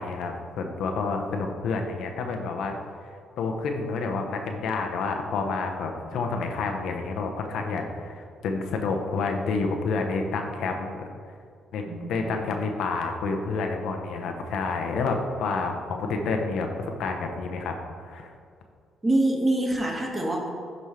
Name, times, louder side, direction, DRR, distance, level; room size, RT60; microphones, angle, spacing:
voice 1, 0.0-2.7 3.4-11.0 11.7-11.8 12.1-17.7 18.0-18.3, left 4 dB, 80° left, 3 dB, 0.9 m, -29 dB
voice 2, 11.9-12.6 19.0-20.5, right 1 dB, 20° right, 0 dB, 1.6 m, -26 dB
12.0 x 5.4 x 3.3 m, 2.2 s
cardioid pair, 90°, 0 cm